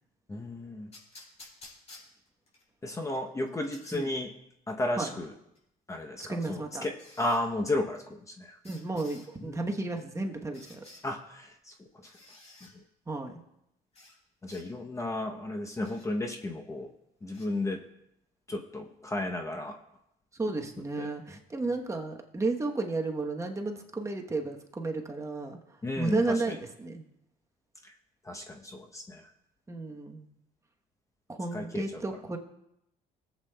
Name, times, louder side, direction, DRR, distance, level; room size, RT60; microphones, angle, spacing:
voice 1, 0.3-0.9 2.8-4.3 4.7-5.3 5.9-8.6 9.4-9.6 11.0-12.1 12.6-12.8 14.4-16.9 17.2-17.9 18.5-19.8 21.0-21.1 25.8-26.5 27.8-27.9 28.2-29.2 31.5-31.9, left 1 dB, 20° left, 3 dB, 0.8 m, -34 dB
sound 1, 0.9-2.6 3.1-4.0 5.5-5.6 7.0-7.4 8.6-9.3 10.5-11.0 12.0-12.7 13.9-14.2 14.5-14.6 15.8-16.1 17.3-17.5, left 2 dB, 40° left, 4.3 m, -52 dB
voice 2, 6.2-6.8 8.6-10.9 13.1-13.4 20.3-27.1 29.7-30.3 31.3-32.4, right 3 dB, 15° right, 3 dB, 1.0 m, -33 dB
17.0 x 8.0 x 2.2 m, 0.82 s
cardioid pair, 110°, 17 cm